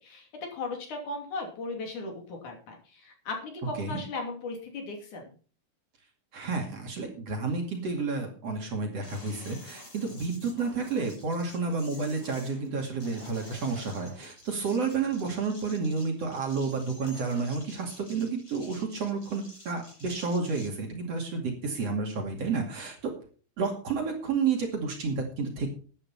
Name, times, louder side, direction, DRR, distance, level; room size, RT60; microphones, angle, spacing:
voice 1, 0.0-5.3, left 3 dB, 60° left, 2 dB, 4.3 m, -37 dB
voice 2, 6.3-23.1 23.6-25.7, right 4 dB, 50° right, 2 dB, 3.2 m, -31 dB
sound 1, 9.0-20.7, left 1 dB, 30° left, 8.6 m, -50 dB
13.5 x 10.5 x 4.3 m, 0.40 s
omnidirectional pair, 4.1 m